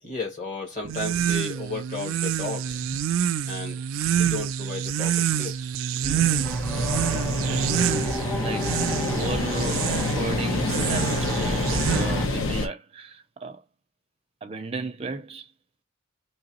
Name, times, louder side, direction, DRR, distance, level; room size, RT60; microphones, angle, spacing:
voice 1, 0.0-3.0 3.4-3.8 4.2-5.7, left 3 dB, 40° left, 1.9 m, -34 dB
sound 1, 0.8-12.4, right 9 dB, 85° right, 0.3 m, -27 dB
voice 2, 6.0-6.7 7.9-8.9 9.1-13.6 14.4-15.5, right 3 dB, 30° right, 0.5 m, -35 dB
sound 2, 6.4-12.3, equal, 10° left, 1.1 m, -30 dB
sound 3, 6.7-12.7, left 3 dB, 80° left, 0.8 m, -29 dB
3.8 x 3.0 x 2.9 m
head